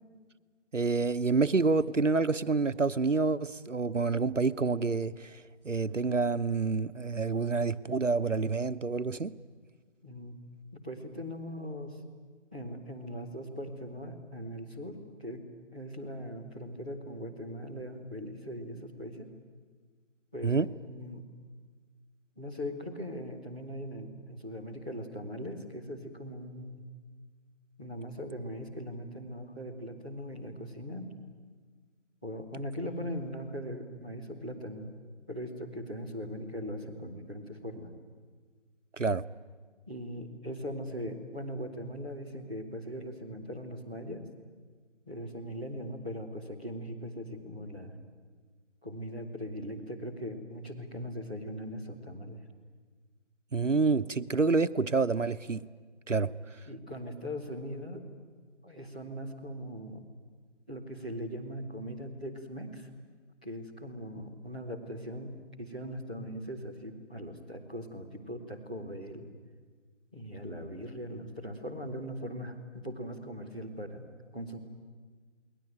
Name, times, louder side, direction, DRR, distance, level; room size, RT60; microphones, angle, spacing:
voice 1, 0.7-9.3 20.4-20.7 38.9-39.2 53.5-55.6 56.1-56.3, right 4 dB, 90° right, 13 dB, 1.0 m, -28 dB
voice 2, 10.0-10.4 10.7-12.0 12.5-15.4 15.7-19.3 20.3-20.5 20.8-21.2 22.3-26.9 27.8-31.1 32.2-34.9 35.3-37.9 39.9-44.2 45.0-48.0 48.8-52.4 56.6-58.0 58.6-60.0 60.7-62.9 63.4-69.2 70.1-74.0 74.3-74.6, equal, 5° left, -9 dB, 1.1 m, -40 dB
29.5 x 21.0 x 9.1 m, 1.5 s
figure-of-eight pair, 165°, 36 cm